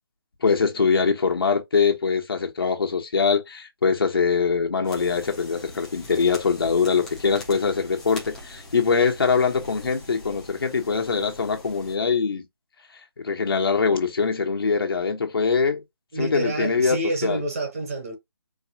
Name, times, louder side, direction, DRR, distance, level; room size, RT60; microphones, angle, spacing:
voice 1, 0.4-12.4 13.2-15.8 16.2-17.0 17.2-17.4, left 5 dB, 65° left, 1.3 m, -23 dB
sound 1, 4.8-12.0, left 2 dB, 5° left, 0.6 m, -43 dB
voice 2, 16.1-18.2, right 1 dB, 35° right, 1.1 m, -28 dB
4.6 x 2.4 x 2.9 m
hypercardioid pair, 170°, 13 cm